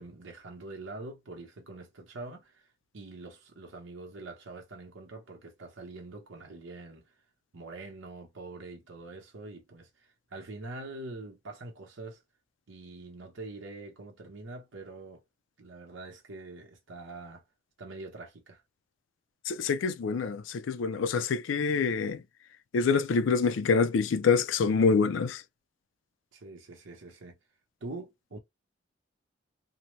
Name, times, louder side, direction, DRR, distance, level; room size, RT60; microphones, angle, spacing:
voice 1, 0.0-7.2 7.5-12.2 12.7-15.2 15.6-17.4 17.8-18.6 26.3-27.4 27.8-28.4, right 2 dB, 85° right, 0.8 m, -44 dB
voice 2, 19.5-22.2 22.7-25.4, left 5 dB, 75° left, 0.4 m, -26 dB
2.7 x 2.0 x 3.1 m
head